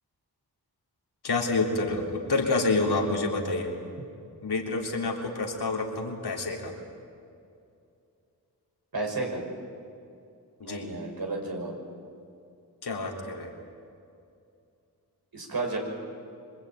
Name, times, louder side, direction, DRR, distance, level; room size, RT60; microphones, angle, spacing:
voice 1, 1.2-3.7 4.4-6.7 10.6-10.9 12.8-13.5, left 3 dB, 85° left, 0 dB, 3.6 m, -28 dB
voice 2, 8.9-9.4 10.6-11.8 15.3-15.8, right 3 dB, 65° right, 1 dB, 6.1 m, -32 dB
26.0 x 23.0 x 9.3 m, 2.5 s
cardioid pair, 40°, 38 cm